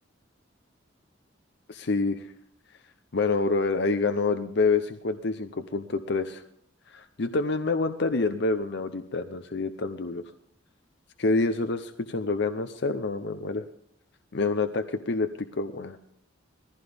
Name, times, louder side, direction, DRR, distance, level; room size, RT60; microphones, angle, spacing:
voice 1, 1.7-2.2 3.1-6.4 6.9-10.2 11.2-13.6 14.3-15.3 15.6-16.0, left 3 dB, 60° left, 8 dB, 0.7 m, -27 dB
20.0 x 15.0 x 3.5 m, 0.66 s
head